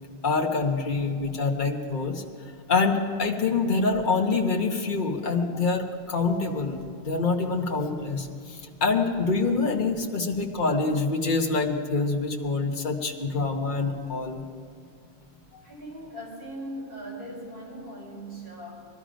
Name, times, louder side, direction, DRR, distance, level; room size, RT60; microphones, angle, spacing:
voice 1, 0.2-2.2 2.7-14.4 15.5-15.6, left 4 dB, 50° left, 2 dB, 1.4 m, -26 dB
voice 2, 15.6-18.9, right 1 dB, 60° right, -4 dB, 5.0 m, -39 dB
21.0 x 13.0 x 5.1 m, 2.3 s
omnidirectional pair, 1.1 m